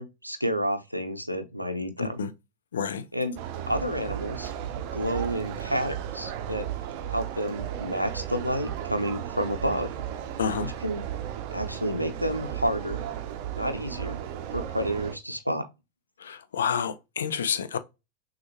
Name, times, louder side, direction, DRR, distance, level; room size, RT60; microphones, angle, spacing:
voice 1, 0.0-2.2 3.1-3.4 3.7-4.5 4.9-6.7 7.1-9.9 10.6-11.0 11.5-13.1 13.5-14.2 14.5-15.7, equal, 90° right, 0.6 m, -30 dB
voice 2, 2.0-2.3 2.7-3.0 10.4-10.7 16.2-17.8, left 7 dB, 65° left, 0.5 m, -29 dB
sound 1, 3.4-15.2, right 10 dB, 45° right, 0.6 m, -35 dB
6.2 x 2.5 x 2.9 m
figure-of-eight pair, 90°, 0 cm